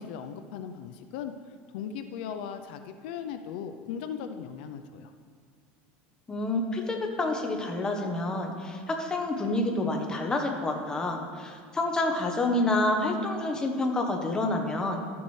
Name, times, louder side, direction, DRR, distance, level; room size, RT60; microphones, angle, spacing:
voice 1, 0.0-1.3 1.7-5.1, left 8 dB, 75° left, 8 dB, 0.5 m, -38 dB
voice 2, 6.3-15.0, left 2 dB, 15° left, 2 dB, 0.9 m, -28 dB
12.0 x 7.0 x 3.2 m, 2.1 s
cardioid pair, 155°, 5 cm